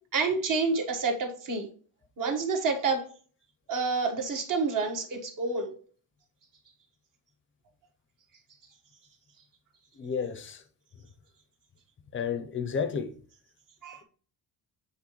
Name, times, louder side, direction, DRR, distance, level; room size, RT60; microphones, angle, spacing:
voice 1, 0.1-1.7 2.2-3.0 3.7-5.7 13.8-14.0, right 4 dB, 45° right, 1.5 m, -28 dB
voice 2, 9.9-10.6 12.1-13.1, left 6 dB, 30° left, 0.6 m, -31 dB
8.5 x 4.1 x 3.1 m
cardioid pair, 155°, 43 cm